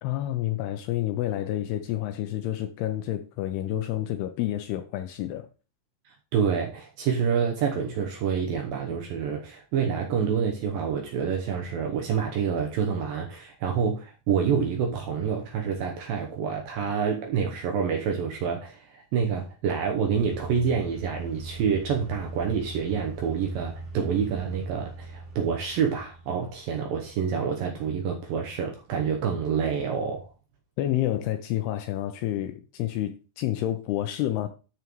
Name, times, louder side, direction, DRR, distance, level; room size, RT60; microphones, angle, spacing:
voice 1, 0.0-5.5 30.8-34.5, left 13 dB, 80° left, 2.4 m, -29 dB
voice 2, 6.1-30.3, right 7 dB, 75° right, 2.2 m, -27 dB
sound 1, 20.1-26.7, right 3 dB, 40° right, 3.2 m, -40 dB
12.5 x 5.8 x 3.1 m
omnidirectional pair, 5.1 m